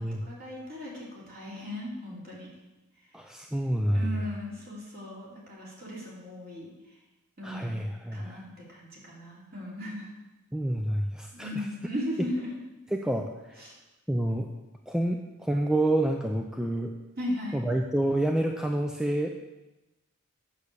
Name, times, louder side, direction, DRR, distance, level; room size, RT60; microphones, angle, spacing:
voice 1, 0.0-2.5 3.9-6.7 7.4-7.7 8.1-10.1 11.3-12.6 13.6-13.7 17.1-17.6, left 1 dB, 45° right, -4 dB, 3.3 m, -37 dB
voice 2, 3.1-4.3 7.4-8.4 10.5-11.7 12.9-13.6 14.1-14.5 14.9-16.9 17.5-19.3, right 1 dB, 5° right, 2 dB, 0.5 m, -28 dB
8.3 x 7.1 x 6.8 m, 1.0 s
head